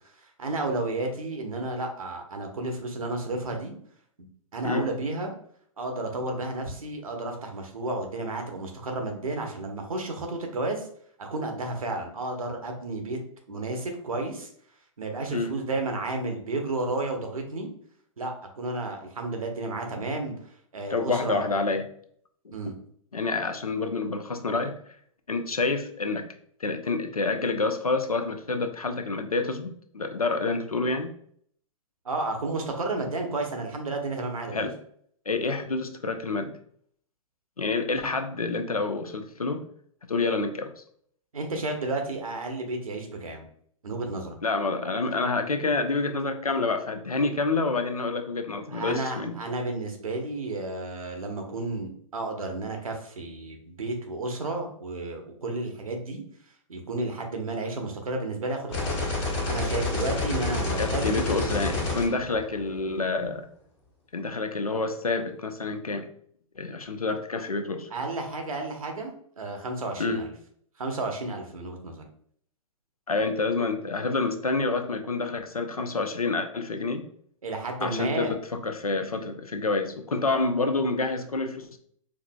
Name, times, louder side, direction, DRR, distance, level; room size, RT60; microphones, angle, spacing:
voice 1, 0.4-3.7 4.2-5.3 5.8-10.9 11.2-13.2 13.5-14.5 15.0-17.7 18.2-20.3 20.7-21.5 22.5-22.7 32.0-34.7 41.3-43.4 43.8-44.4 48.7-56.2 56.7-58.9 59.5-61.2 67.9-70.3 70.8-72.0 77.4-78.3, right 2 dB, 75° right, 3 dB, 0.9 m, -32 dB
voice 2, 20.9-21.8 23.1-24.8 25.3-26.3 26.6-31.1 34.5-34.7 35.3-36.5 37.6-39.6 40.1-40.7 44.4-49.3 60.8-63.5 64.1-66.1 66.6-67.9 70.0-70.3 73.1-77.1 77.8-81.8, left 3 dB, 90° left, 7 dB, 0.5 m, -28 dB
sound 1, 58.7-62.9, left 3 dB, 50° left, 1.2 m, -29 dB
4.7 x 2.6 x 2.2 m, 0.63 s
figure-of-eight pair, 110°, 18 cm